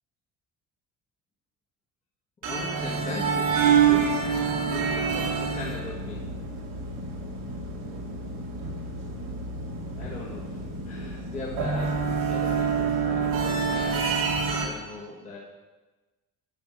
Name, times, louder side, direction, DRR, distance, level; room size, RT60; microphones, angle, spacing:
voice 1, 2.4-4.2 4.6-6.2 9.9-10.6 10.8-14.1 14.6-15.4, left 3 dB, 25° left, -6 dB, 1.6 m, -39 dB
sound 1, 2.4-14.7, right 6 dB, 85° right, 2.4 m, -27 dB
10.5 x 5.9 x 6.3 m, 1.2 s
cardioid pair, 160°, 32 cm